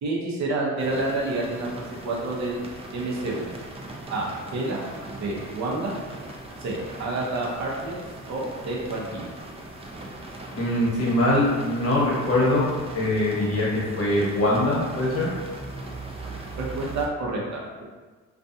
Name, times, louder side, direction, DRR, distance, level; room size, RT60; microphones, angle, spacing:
voice 1, 0.0-1.7 2.0-2.6 2.9-3.5 4.1-4.8 5.1-6.0 6.6-7.9 8.3-9.3 16.6-17.8, right 2 dB, 65° right, -3 dB, 0.8 m, -29 dB
sound 1, 0.8-17.1, right 2 dB, 20° right, 0.4 m, -39 dB
voice 2, 10.6-12.7 12.9-15.3, left 1 dB, 50° left, -5 dB, 1.1 m, -22 dB
2.5 x 2.3 x 2.7 m, 1.4 s
cardioid pair, 90°, 30 cm